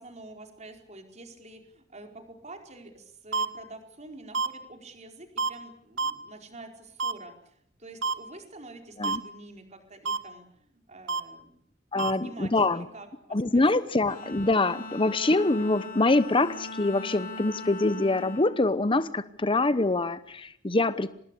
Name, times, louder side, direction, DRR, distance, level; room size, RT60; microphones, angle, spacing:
voice 1, 0.0-11.5 12.0-13.9, right 2 dB, 35° right, 4 dB, 4.7 m, -47 dB
sound 1, 3.3-3.5 4.3-4.5 5.4-5.5 6.0-6.1 7.0-7.1 8.0-8.1 9.0-9.2 10.0-10.2 11.1-11.2 12.0-12.1, right 4 dB, 90° right, 1.6 m, -27 dB
voice 2, 11.9-12.8 13.3-21.1, left 2 dB, 25° left, 13 dB, 0.9 m, -25 dB
Bowed string instrument, 14.1-19.6, left 2 dB, 50° left, 7.2 m, -41 dB
26.0 x 20.0 x 8.4 m, 0.70 s
head